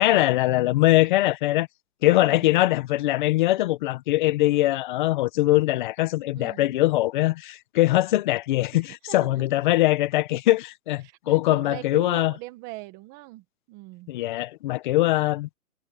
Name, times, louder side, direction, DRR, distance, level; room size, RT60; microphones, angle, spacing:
voice 1, 0.0-1.7 2.0-12.3 14.1-15.5, left 17 dB, 35° left, 1.1 m, -22 dB
voice 2, 2.1-2.5 6.3-6.7 8.8-9.4 11.0-14.2, right 20 dB, 20° right, 1.3 m, -41 dB
hypercardioid pair, 160°, 44 cm